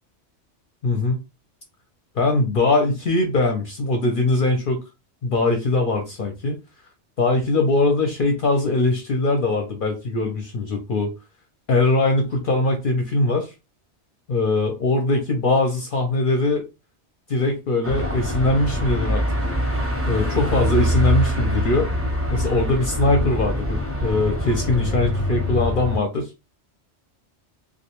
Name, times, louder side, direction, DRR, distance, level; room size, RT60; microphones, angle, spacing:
voice 1, 0.8-1.2 2.1-4.8 5.2-6.6 7.2-11.1 11.7-13.5 14.3-16.7 17.3-19.2 20.0-21.9 22.3-26.3, left 2 dB, 60° left, 3 dB, 0.6 m, -21 dB
Car passing by / Traffic noise roadway noise / Engine, 17.8-26.0, equal, 15° right, 0.6 m, -24 dB
2.4 x 2.1 x 2.9 m, 0.26 s
omnidirectional pair, 1.2 m